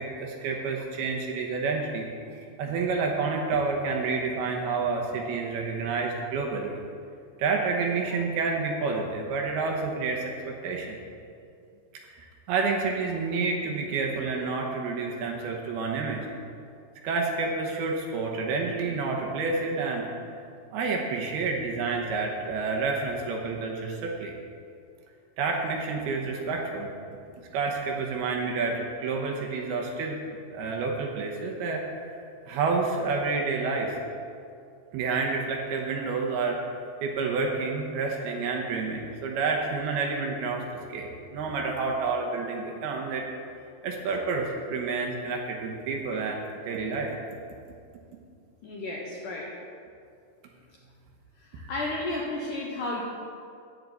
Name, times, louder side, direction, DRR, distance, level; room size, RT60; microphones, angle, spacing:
voice 1, 0.0-6.8 7.4-11.0 12.0-12.1 12.5-16.3 17.0-20.1 20.7-24.3 25.4-26.9 27.5-30.2 30.5-31.8 32.1-34.0 34.9-36.6 37.0-43.3 43.8-46.4 46.7-47.2 51.6-51.7, right 4 dB, 75° right, 0 dB, 2.9 m, -29 dB
voice 2, 48.6-49.5 51.4-53.0, left 2 dB, 75° left, -3 dB, 1.9 m, -33 dB
14.0 x 9.5 x 4.1 m, 2.4 s
omnidirectional pair, 5.0 m